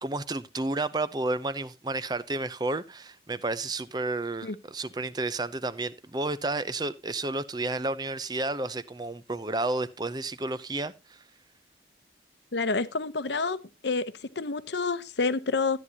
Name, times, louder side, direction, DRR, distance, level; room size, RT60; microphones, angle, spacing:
voice 1, 0.0-11.2, right 2 dB, 25° right, 0.6 m, -31 dB
voice 2, 12.5-13.6 13.8-14.1 14.4-15.8, left 4 dB, 80° left, 0.9 m, -28 dB
13.5 x 9.6 x 2.8 m
head